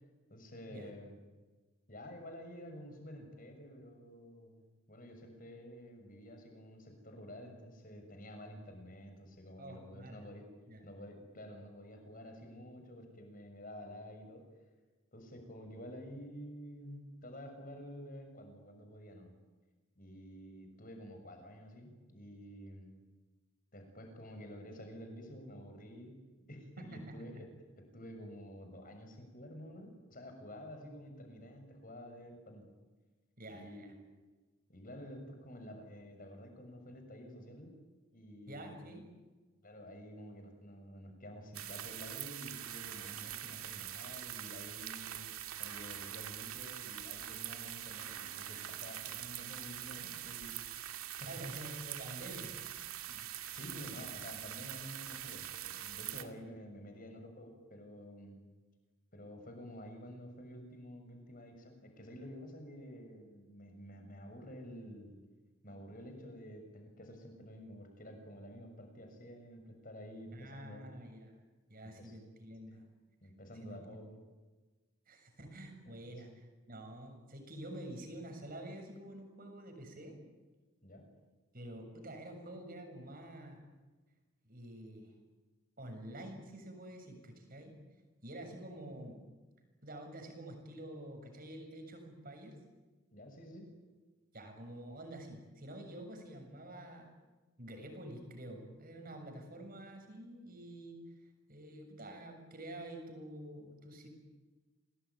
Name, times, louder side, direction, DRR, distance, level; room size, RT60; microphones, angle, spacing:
voice 1, 0.3-1.2 1.9-4.6 4.9-10.5 10.8-14.4 15.1-19.3 20.0-22.9 23.7-26.2 26.5-27.5 27.8-32.7 33.5-34.0 34.7-37.7 38.1-38.8 39.6-45.3 45.6-50.5 51.2-51.3 53.0-58.4 59.1-65.2 65.6-70.9 72.0-72.2 73.2-74.2 75.9-76.2 80.8-81.0 93.1-93.7, equal, 40° left, 5 dB, 6.9 m, -50 dB
voice 2, 9.6-10.2 10.7-10.8 26.8-27.1 33.4-33.9 38.5-39.1 51.2-52.6 56.1-56.3 70.3-71.4 71.7-72.9 73.6-74.0 75.1-80.2 81.5-83.6 84.4-85.1 85.8-87.7 88.2-89.2 89.8-92.6 94.3-97.1 97.6-101.0 101.5-104.1, right 1 dB, 40° right, 5 dB, 7.1 m, -48 dB
sound 1, 41.5-56.2, right 11 dB, 80° right, 2.3 m, -44 dB
29.0 x 21.0 x 9.7 m, 1.3 s
head